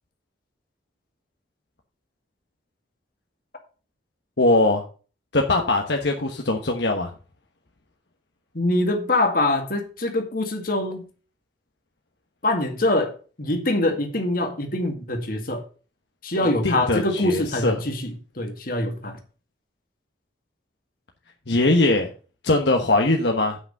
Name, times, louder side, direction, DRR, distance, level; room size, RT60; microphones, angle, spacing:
voice 1, 4.4-4.8 5.3-7.1 16.6-17.8 21.5-22.1 22.4-23.6, left 2 dB, 70° left, 1.2 m, -21 dB
voice 2, 8.5-11.0 12.4-15.6 16.2-19.2, left 1 dB, 50° left, 2.0 m, -24 dB
8.1 x 6.0 x 6.7 m
head